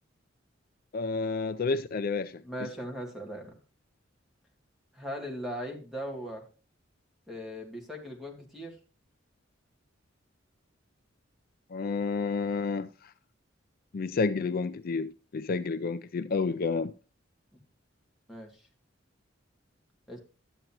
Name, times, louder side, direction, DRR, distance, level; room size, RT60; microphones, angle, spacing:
voice 1, 0.9-2.4 11.7-13.1 13.9-16.9, left 4 dB, 50° left, 0.4 m, -30 dB
voice 2, 2.4-3.5 4.9-6.5 7.3-8.8 18.3-18.6 20.1-20.2, equal, ahead, 2.5 m, -39 dB
12.0 x 9.2 x 2.9 m
head